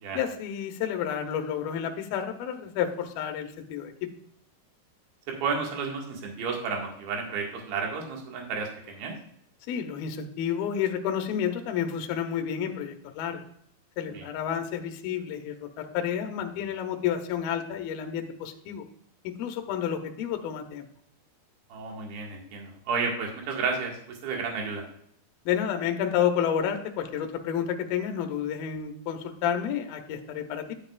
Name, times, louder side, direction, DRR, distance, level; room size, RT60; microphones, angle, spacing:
voice 1, 0.1-4.1 9.7-13.4 14.0-18.8 19.2-20.9 25.5-30.7, left 9 dB, 75° left, 5 dB, 2.3 m, -30 dB
voice 2, 5.3-9.1 14.1-14.3 21.7-24.8, right 5 dB, 60° right, 0 dB, 3.5 m, -32 dB
12.0 x 7.7 x 2.4 m, 0.68 s
omnidirectional pair, 5.2 m